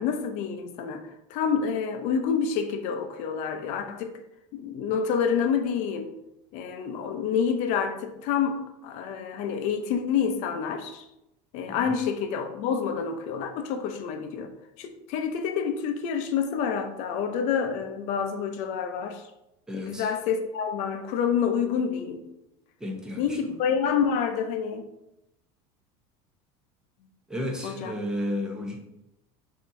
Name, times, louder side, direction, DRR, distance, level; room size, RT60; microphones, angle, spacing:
voice 1, 0.0-4.2 4.5-6.1 6.5-11.1 11.5-14.5 14.8-19.3 19.7-22.3 23.2-24.8 27.6-27.9, left 7 dB, 60° left, 7 dB, 0.6 m, -28 dB
voice 2, 19.7-20.1 22.8-23.5 27.3-28.8, left 1 dB, 5° right, -1 dB, 0.8 m, -33 dB
5.2 x 2.8 x 2.6 m, 0.87 s
supercardioid pair, 125°, 14 cm